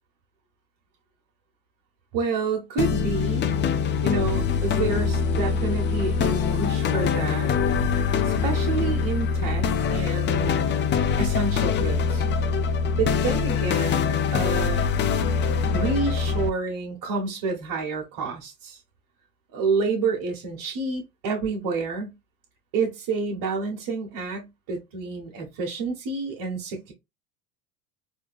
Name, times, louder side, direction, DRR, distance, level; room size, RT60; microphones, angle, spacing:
voice 1, 2.1-3.5 4.0-7.5 8.2-10.7 11.2-12.2 13.0-14.8 15.7-18.8 19.5-22.1 22.7-26.9, right 4 dB, 50° right, 1.3 m, -29 dB
sound 1, 2.8-16.5, left 6 dB, 25° left, 0.4 m, -23 dB
4.4 x 2.6 x 2.4 m
hypercardioid pair, 85°, 44 cm